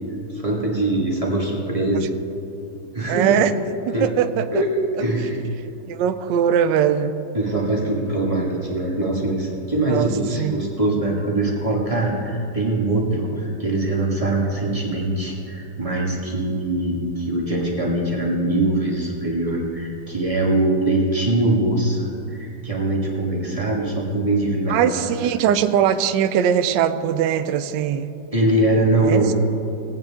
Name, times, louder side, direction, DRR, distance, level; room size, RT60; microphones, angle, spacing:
voice 1, 0.3-2.1 2.9-3.4 3.9-4.1 4.5-5.5 7.3-25.0 28.3-29.3, right 2 dB, 20° right, -3 dB, 1.4 m, -22 dB
voice 2, 3.1-3.5 3.9-4.5 5.9-7.2 9.9-10.1 10.4-10.5 24.7-28.1 29.0-29.2, right 9 dB, 75° right, 10 dB, 1.1 m, -20 dB
19.0 x 8.9 x 3.6 m, 2.7 s
omnidirectional pair, 2.4 m